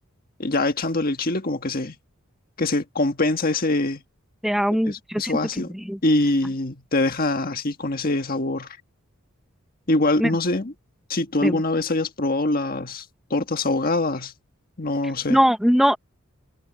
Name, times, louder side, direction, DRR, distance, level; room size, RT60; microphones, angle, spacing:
voice 1, 0.4-2.0 2.6-4.0 4.8-5.7 6.0-8.7 9.9-10.7 11.1-13.1 13.3-14.3 14.8-15.4, left 2 dB, 45° left, 1.6 m, -24 dB
voice 2, 4.4-6.0 10.2-10.3 11.4-11.6 15.3-16.0, equal, ahead, 0.9 m, -21 dB
head